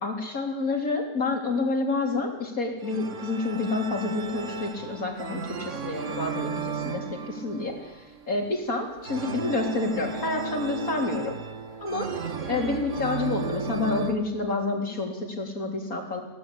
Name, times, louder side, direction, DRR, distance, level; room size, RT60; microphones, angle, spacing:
voice 1, 0.0-11.4 11.8-12.1 12.5-16.2, left 3 dB, 55° left, 2 dB, 4.0 m, -29 dB
sound 1, 2.8-14.1, right 5 dB, 50° right, 1.7 m, -35 dB
23.0 x 17.5 x 8.6 m, 1.1 s
omnidirectional pair, 1.8 m